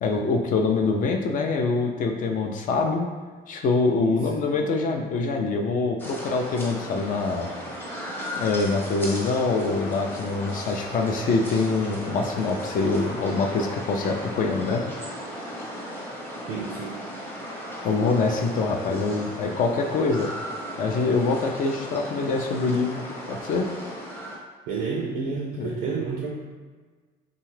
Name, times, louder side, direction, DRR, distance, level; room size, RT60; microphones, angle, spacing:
voice 1, 0.0-3.1 3.5-7.5 8.4-14.8 17.8-20.3 20.8-23.7 25.6-25.8, left 3 dB, 55° left, 2 dB, 0.4 m, -24 dB
sound 1, 6.0-24.4, equal, 10° left, 0.7 m, -36 dB
voice 2, 16.5-17.0 24.7-26.3, right 5 dB, 80° right, -1 dB, 0.4 m, -30 dB
2.7 x 2.3 x 3.2 m, 1.5 s
cardioid pair, 110°, 17 cm